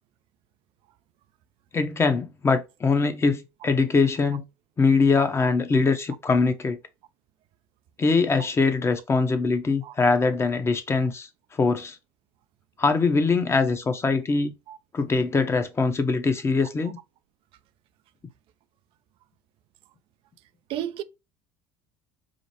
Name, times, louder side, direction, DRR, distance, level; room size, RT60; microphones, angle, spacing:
voice 1, 1.7-4.4 4.8-6.8 8.0-12.0 12.8-14.5 14.9-17.0, left 4 dB, 25° left, 0.8 m, -22 dB
voice 2, 5.2-5.5 9.8-10.0 14.7-14.8 20.7-21.0, right 11 dB, 60° right, 0.4 m, -33 dB
5.0 x 2.1 x 2.9 m
hypercardioid pair, 80°, 11 cm